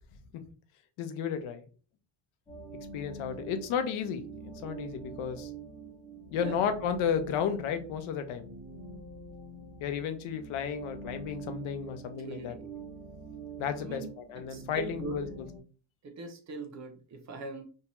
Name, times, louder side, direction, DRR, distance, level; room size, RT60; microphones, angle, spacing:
voice 1, 1.0-1.6 2.9-5.5 6.3-8.5 9.8-12.5 13.6-15.3, left 7 dB, 75° left, 8 dB, 0.7 m, -33 dB
sound 1, 2.5-15.6, right 3 dB, 15° left, 0.5 m, -45 dB
voice 2, 12.2-12.7 13.8-14.1 14.5-15.3 16.0-17.6, right 3 dB, 35° right, 5 dB, 0.5 m, -41 dB
2.6 x 2.2 x 2.9 m, 0.37 s
cardioid pair, 160°, 49 cm